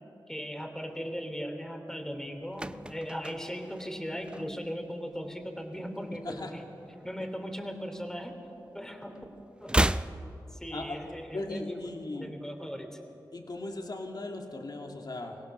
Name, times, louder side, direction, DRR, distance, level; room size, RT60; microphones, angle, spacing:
voice 1, 0.3-6.6 7.0-8.4 8.7-9.2 9.6-9.8 10.5-11.8 12.1-13.0, equal, 5° left, 4 dB, 3.0 m, -38 dB
sound 1, 2.2-4.9 5.1-5.4 5.7-7.2 7.5-8.8 9.1-11.2 11.4-11.5, right 1 dB, 10° right, 0.6 m, -33 dB
voice 2, 11.3-12.3 13.3-15.4, left 2 dB, 60° left, 2 dB, 2.3 m, -38 dB
23.0 x 17.5 x 6.6 m, 2.9 s
cardioid pair, 40°, 8 cm